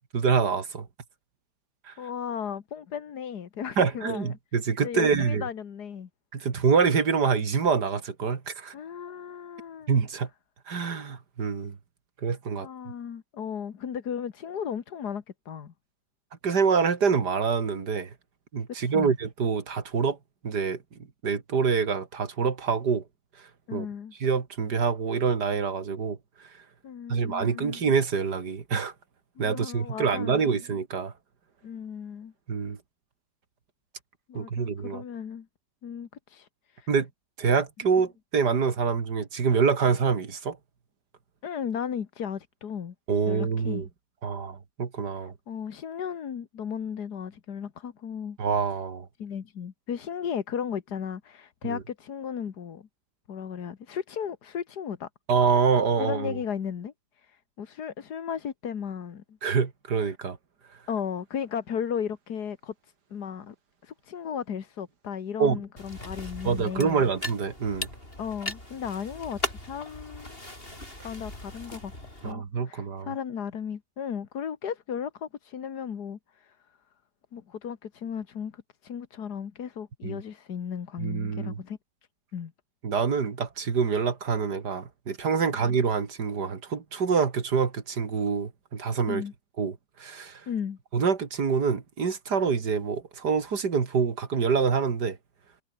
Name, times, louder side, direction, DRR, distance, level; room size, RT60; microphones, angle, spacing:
voice 1, 0.1-0.9 1.9-2.0 3.8-5.4 6.3-8.7 9.9-10.3 10.7-11.7 12.2-12.7 16.4-18.1 18.5-20.2 20.4-20.8 21.2-23.0 23.7-23.9 24.2-26.2 27.1-28.9 29.4-31.1 32.5-32.8 34.3-35.0 36.9-37.1 37.4-40.6 43.1-43.9 44.2-45.3 48.4-49.1 51.6-51.8 55.3-56.4 59.4-60.4 65.4-65.6 66.4-67.9 72.2-73.1 80.0-80.2 81.0-81.6 82.8-89.2 89.6-90.4 90.9-95.2, right 5 dB, 70° right, 2.8 m, -26 dB
voice 2, 2.0-4.3 4.8-6.1 8.7-9.9 12.5-15.7 18.8-19.1 23.7-24.1 26.8-27.8 29.4-30.6 31.6-32.3 34.3-35.5 35.8-36.9 41.4-42.9 43.3-43.8 45.5-48.4 49.2-52.9 53.3-55.1 56.0-59.4 60.9-63.6 63.8-67.0 68.2-70.4 71.0-71.9 72.2-76.6 77.3-81.8 82.3-82.5 85.5-85.7 89.1-89.3 90.5-90.8, left 7 dB, 65° left, 2.0 m, -35 dB
sound 1, 65.8-72.3, left 1 dB, 30° left, 8.1 m, -38 dB
omnidirectional pair, 1.9 m